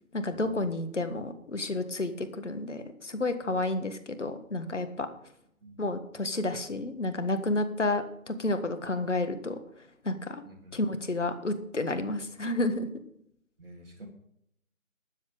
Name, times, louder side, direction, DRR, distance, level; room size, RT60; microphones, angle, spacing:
voice 1, 0.1-5.1 5.8-9.6 10.0-10.4 10.7-12.9, left 2 dB, 55° left, 9 dB, 1.6 m, -31 dB
voice 2, 13.6-14.1, right 1 dB, 40° right, -1 dB, 2.0 m, -49 dB
12.5 x 8.6 x 5.0 m, 0.75 s
figure-of-eight pair, 160°, 42 cm